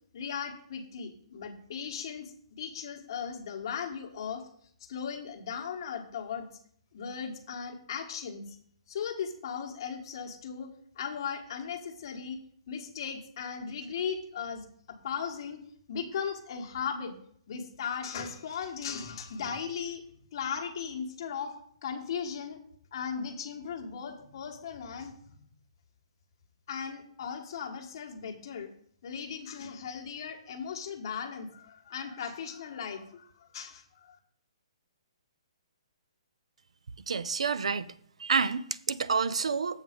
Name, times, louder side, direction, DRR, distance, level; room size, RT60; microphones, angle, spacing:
voice 1, 0.1-4.5 4.9-6.5 6.9-8.6 8.9-12.4 12.7-15.6 15.9-17.1 17.5-20.0 20.3-21.5 21.8-22.6 22.9-25.4 26.7-28.7 29.0-34.2, left 7 dB, 45° left, 1.2 m, -37 dB
voice 2, 37.1-37.9 38.2-39.8, right 5 dB, 90° right, 0.5 m, -29 dB
7.4 x 5.6 x 5.1 m
hypercardioid pair, 165°, 3 cm